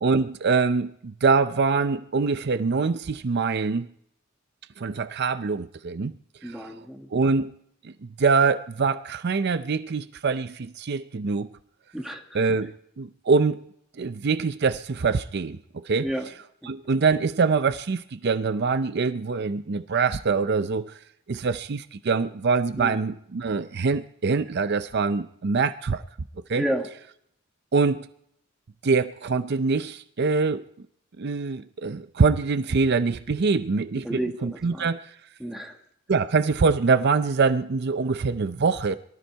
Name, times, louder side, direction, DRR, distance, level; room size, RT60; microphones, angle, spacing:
voice 1, 0.0-3.9 4.8-6.1 6.4-6.7 7.1-7.5 7.8-11.5 12.3-13.6 14.0-16.1 16.6-21.0 21.3-26.0 26.5-26.6 27.7-28.1 28.8-30.7 31.2-35.1 36.1-39.0, right 4 dB, 55° right, 0.5 m, -24 dB
voice 2, 6.4-7.1 11.9-12.2 16.0-16.2 16.6-16.7 22.8-23.0 26.6-26.9 33.9-34.9 35.4-35.8, right 1 dB, ahead, 1.6 m, -31 dB
23.0 x 13.5 x 4.6 m
head